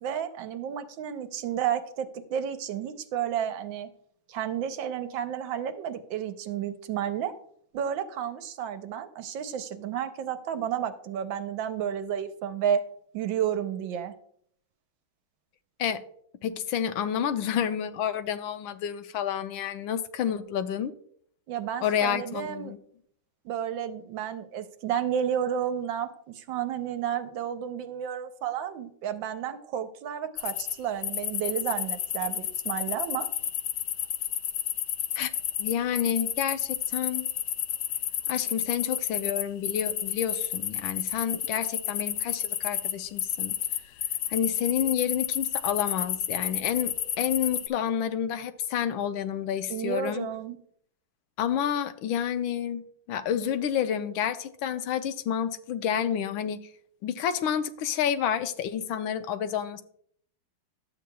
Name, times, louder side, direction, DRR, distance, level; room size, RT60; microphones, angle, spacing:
voice 1, 0.0-3.9 4.3-7.3 7.7-12.8 13.1-14.1 21.5-22.7 23.4-33.3 49.7-50.6, right 9 dB, 80° right, 1.4 m, -31 dB
voice 2, 16.4-20.9 21.8-22.8 35.2-35.3 35.6-37.3 38.3-43.5 44.3-50.3 51.4-52.8 53.1-56.7 57.0-59.8, left 9 dB, 90° left, 1.4 m, -29 dB
sound 1, 30.4-30.8 31.0-47.7, left 10 dB, 70° left, 1.0 m, -31 dB
12.0 x 7.8 x 2.3 m
omnidirectional pair, 2.1 m